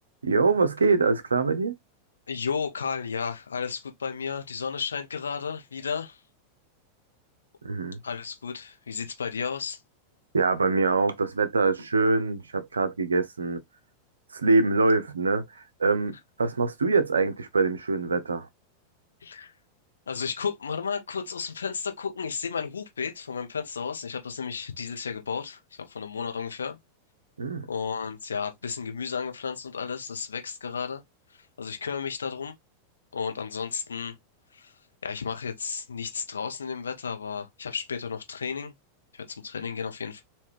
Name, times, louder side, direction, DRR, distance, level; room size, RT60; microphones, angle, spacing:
voice 1, 0.2-1.7 7.6-8.0 10.3-13.6 14.3-15.5 15.8-18.5 27.4-27.7, right 3 dB, 75° right, 0.6 m, -24 dB
voice 2, 2.3-6.2 8.0-9.8 19.2-19.5 20.1-26.8 27.7-31.0 31.3-32.5 33.1-34.1 34.5-34.7 35.0-38.7 39.1-40.2, left 6 dB, 70° left, 0.8 m, -33 dB
3.4 x 2.6 x 3.4 m
figure-of-eight pair, 90°, 0 cm